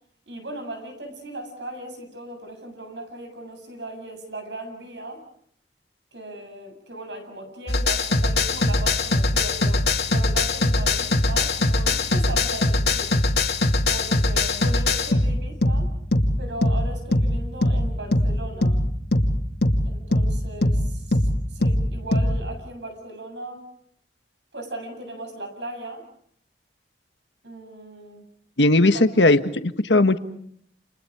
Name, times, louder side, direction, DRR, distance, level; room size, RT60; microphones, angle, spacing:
voice 1, 0.3-5.2 6.1-13.2 13.9-15.9 16.4-18.8 19.8-23.7 24.5-26.1 27.4-28.2 28.9-29.0, right 1 dB, 85° right, 6 dB, 7.8 m, -37 dB
sound 1, 7.7-22.4, left 2 dB, 65° left, 2.6 m, -21 dB
voice 2, 28.6-30.2, left 2 dB, 90° left, 9 dB, 1.6 m, -18 dB
30.0 x 29.5 x 5.0 m, 0.67 s
head